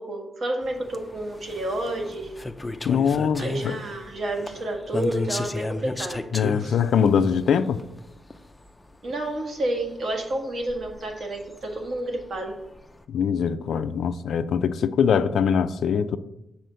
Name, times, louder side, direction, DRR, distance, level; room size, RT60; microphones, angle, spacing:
voice 1, 0.0-2.3 3.4-6.2 6.6-6.7 9.0-12.6, right 1 dB, 50° right, 1.5 m, -30 dB
sound 1, 0.6-13.0, left 2 dB, 10° left, 0.5 m, -35 dB
voice 2, 2.8-3.8 6.3-7.8 13.1-16.2, left 7 dB, 75° left, 0.4 m, -22 dB
7.6 x 4.3 x 6.7 m
wide cardioid pair, 170°, 0 cm